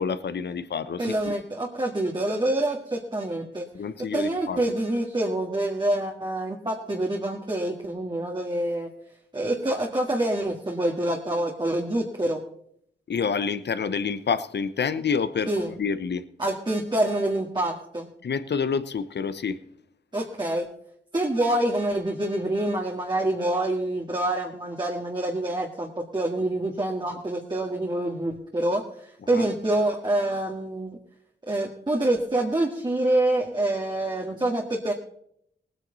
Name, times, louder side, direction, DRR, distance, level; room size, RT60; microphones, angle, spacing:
voice 1, 0.0-1.4 3.7-4.6 13.1-16.2 18.2-19.6 29.3-29.4, left 6 dB, 70° left, 13 dB, 0.9 m, -28 dB
voice 2, 1.0-3.7 4.0-8.9 9.3-12.4 15.5-15.7 16.4-18.1 20.1-20.7 21.1-31.0 31.5-34.9, right 1 dB, 25° right, -1 dB, 1.9 m, -26 dB
19.0 x 9.3 x 4.0 m, 0.71 s
cardioid pair, 60°, 18 cm